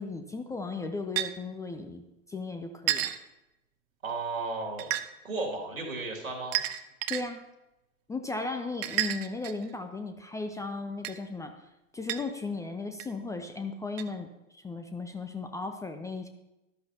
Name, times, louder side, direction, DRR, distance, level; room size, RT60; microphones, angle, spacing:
voice 1, 0.0-2.0 2.3-3.1 7.1-7.4 8.1-11.5 11.9-16.3, left 3 dB, 10° left, 6 dB, 0.4 m, -36 dB
sound 1, 1.2-1.3 2.9-3.2 4.8-5.1 6.5-7.2 8.8-9.7 11.0-11.2 12.1-12.2 13.0-13.1 14.0-14.1, right 14 dB, 45° right, 0.8 m, -30 dB
voice 2, 4.0-4.9 5.2-6.6, right 3 dB, 80° right, 0 dB, 2.4 m, -34 dB
13.0 x 12.0 x 2.8 m, 0.93 s
figure-of-eight pair, 85°, 41 cm